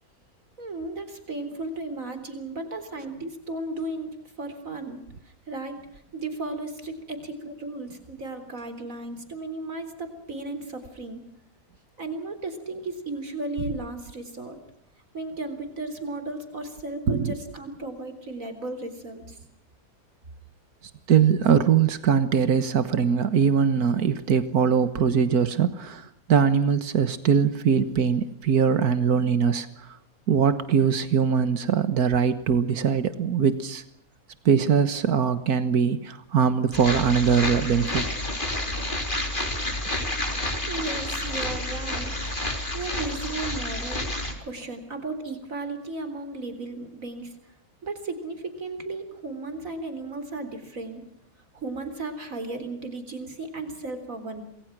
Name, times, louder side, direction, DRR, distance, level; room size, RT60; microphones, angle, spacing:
voice 1, 0.6-5.0 5.5-5.8 6.1-11.2 12.0-14.6 15.1-19.4 40.7-47.3 47.8-51.0 51.5-54.4, right 2 dB, 60° right, 9 dB, 4.2 m, -35 dB
voice 2, 21.1-29.7 30.3-33.8 34.5-38.1, right 7 dB, 90° right, 12 dB, 1.9 m, -22 dB
sound 1, 36.7-44.3, left 1 dB, 35° left, 3.9 m, -29 dB
27.5 x 21.0 x 6.1 m, 0.74 s
omnidirectional pair, 1.6 m